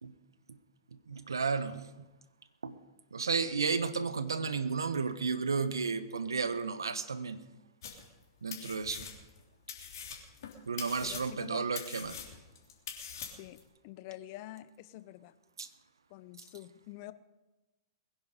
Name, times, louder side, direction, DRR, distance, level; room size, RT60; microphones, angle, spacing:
voice 1, 1.1-1.9 2.6-2.8 3.1-7.4 8.4-9.1 10.7-12.2 15.6-15.7, right 5 dB, 80° right, 13 dB, 1.1 m, -33 dB
sound 1, 7.8-8.2 8.5-9.4 9.7-13.6, left 7 dB, 65° left, 3.2 m, -44 dB
voice 2, 11.0-11.6 13.2-15.3 16.1-17.1, left 15 dB, 45° left, 14 dB, 0.8 m, -47 dB
22.0 x 10.5 x 5.3 m, 1.1 s
figure-of-eight pair, 110°, 2 cm